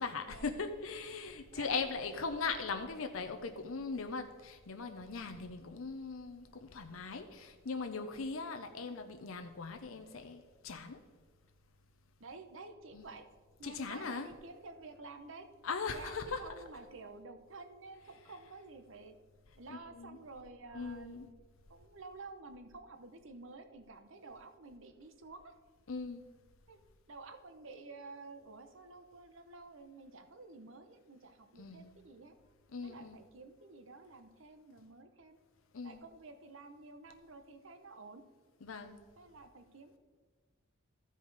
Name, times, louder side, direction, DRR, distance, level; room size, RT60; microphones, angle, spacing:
voice 1, 0.0-11.0 12.9-13.1 13.6-14.3 15.6-16.4 19.7-20.2 20.7-21.3 25.9-26.3 31.6-31.9 32.7-33.2 35.7-36.0 38.6-39.0, left 4 dB, 75° left, 6 dB, 0.6 m, -40 dB
voice 2, 12.2-13.3 13.6-15.5 15.9-19.2 19.6-21.3 21.7-25.5 26.7-32.3 32.8-35.4 35.8-38.2 39.2-40.0, right 3 dB, 65° right, 8 dB, 0.8 m, -51 dB
14.5 x 5.0 x 4.0 m, 1.5 s
head